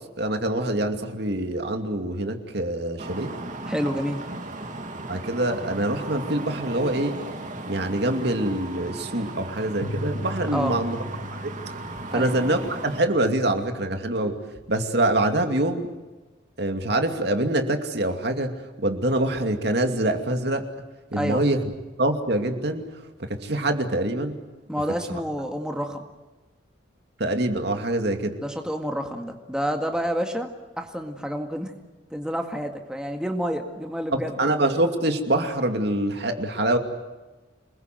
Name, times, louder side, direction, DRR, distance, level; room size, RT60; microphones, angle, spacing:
voice 1, 0.2-3.3 5.1-7.2 7.7-11.0 11.4-11.5 12.1-14.4 14.7-15.9 16.6-20.6 21.1-21.6 22.0-22.9 23.2-24.4 27.2-28.4 34.1-36.8, right 1 dB, 60° right, 5 dB, 2.6 m, -25 dB
sound 1, 3.0-13.0, right 2 dB, 40° right, 2.5 m, -36 dB
voice 2, 3.7-4.2 10.5-10.8 12.1-12.3 21.1-21.4 24.7-26.0 28.4-30.5 30.8-31.7 32.1-34.4, equal, 5° right, 3 dB, 1.9 m, -28 dB
sound 2, 9.8-14.9, equal, 85° left, 6.4 m, -38 dB
27.5 x 21.5 x 7.8 m, 1.2 s
head